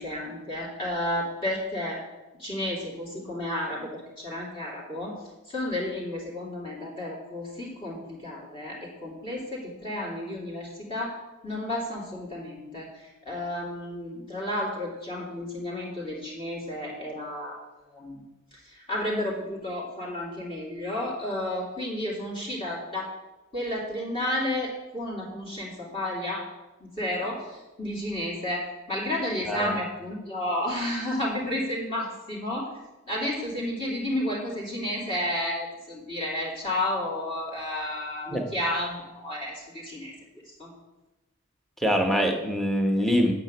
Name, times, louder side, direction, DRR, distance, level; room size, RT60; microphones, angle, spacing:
voice 1, 0.0-2.0 2.4-5.1 5.5-11.2 11.4-17.6 17.9-18.2 18.5-23.1 23.5-26.4 26.8-32.7 33.1-40.1 40.6-40.7, left 1 dB, 25° left, -5 dB, 2.8 m, -32 dB
voice 2, 41.8-43.3, equal, ahead, 3 dB, 1.1 m, -24 dB
9.8 x 6.0 x 7.9 m, 1.0 s
head